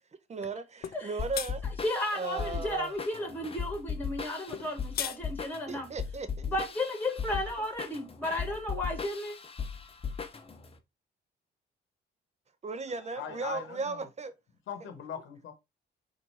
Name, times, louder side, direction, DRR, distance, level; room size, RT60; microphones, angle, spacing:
voice 1, 0.3-1.6 2.1-2.9 5.7-6.5 12.6-14.3, right 3 dB, 35° right, 0.8 m, -36 dB
sound 1, 0.8-1.0 1.3-1.5 4.5-5.2, left 10 dB, 50° left, 0.4 m, -34 dB
sound 2, 1.2-10.7, left 6 dB, 30° left, 0.8 m, -38 dB
voice 2, 1.8-5.9 6.5-9.4, left 1 dB, 10° left, 1.5 m, -33 dB
voice 3, 13.1-14.1 14.7-15.5, left 7 dB, 75° left, 1.0 m, -40 dB
4.3 x 2.7 x 4.3 m
cardioid pair, 90°, 20 cm